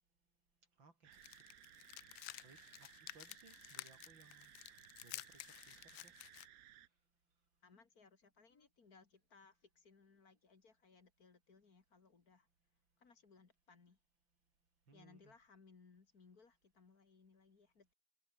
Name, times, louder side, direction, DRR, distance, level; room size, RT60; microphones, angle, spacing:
voice 1, 0.8-1.4 2.4-4.5 5.0-6.2 14.9-15.3, right 4 dB, 80° right, 4.9 m, -65 dB
sound 1, 1.0-6.9, right 12 dB, 60° right, 1.1 m, -61 dB
sound 2, 1.1-6.5, left 18 dB, 85° left, 1.3 m, -52 dB
voice 2, 7.6-12.5 13.0-14.0 14.9-17.9, left 4 dB, 50° left, 2.7 m, -65 dB
omnidirectional pair, 2.1 m